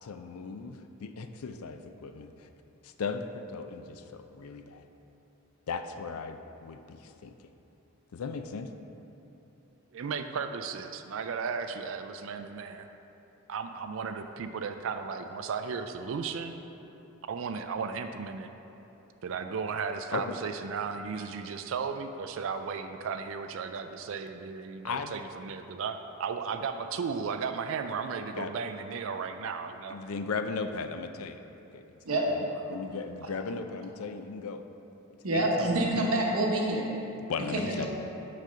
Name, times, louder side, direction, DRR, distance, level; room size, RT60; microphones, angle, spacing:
voice 1, 0.0-2.5 2.8-4.8 5.7-7.4 8.1-8.7 20.1-20.3 24.8-25.2 28.4-28.5 29.9-31.4 31.7-31.8 32.3-34.6 35.3-35.7 37.3-37.9, left 4 dB, 85° left, 8 dB, 0.4 m, -37 dB
voice 2, 9.9-12.9 13.5-16.5 17.3-18.5 19.2-30.0, right 5 dB, 65° right, 7 dB, 0.4 m, -35 dB
voice 3, 35.2-36.9 37.5-37.9, right 1 dB, 85° right, -1 dB, 1.1 m, -27 dB
6.3 x 5.0 x 5.6 m, 3.0 s
head